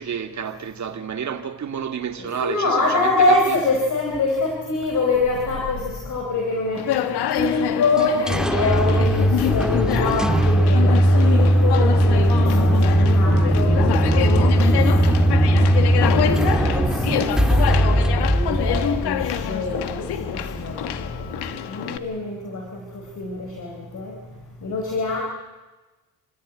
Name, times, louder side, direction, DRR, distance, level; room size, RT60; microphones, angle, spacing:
voice 1, 0.0-3.6, right 7 dB, 45° right, 2.1 m, -30 dB
voice 2, 2.2-14.8 15.1-15.4 16.0-17.3 17.6-24.2 24.6-25.2, left 3 dB, 50° left, 4.4 m, -25 dB
Conversation, 6.7-22.0, left 11 dB, 85° left, 1.7 m, -27 dB
sound 1, 8.0-19.6, right 1 dB, ahead, 1.6 m, -18 dB
sound 2, 9.5-21.5, left 2 dB, 30° left, 5.4 m, -36 dB
28.5 x 14.0 x 9.1 m
cardioid pair, 115°, 39 cm